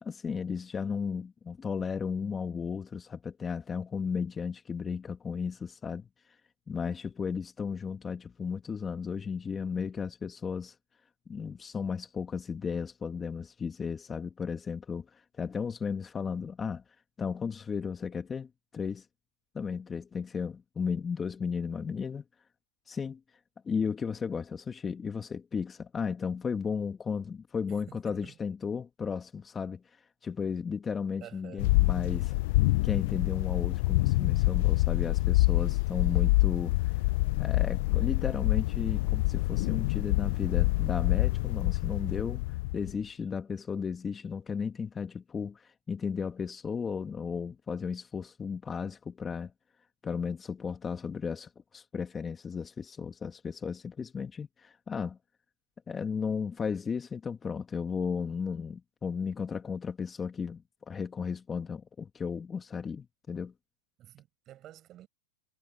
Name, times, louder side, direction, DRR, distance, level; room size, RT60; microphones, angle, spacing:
voice 1, 0.0-6.1 6.7-10.8 11.3-16.8 17.2-19.0 19.5-22.2 22.9-23.2 23.6-32.3 32.8-37.0 37.4-42.4 42.7-49.5 50.0-55.2 55.9-63.5, left 6 dB, 20° left, 2.5 m, -34 dB
voice 2, 27.7-28.4 31.2-31.7 64.0-65.1, right 13 dB, 35° right, 6.2 m, -50 dB
sound 1, 31.6-42.9, left 21 dB, 55° left, 0.6 m, -26 dB
hypercardioid pair, 120°, 0 cm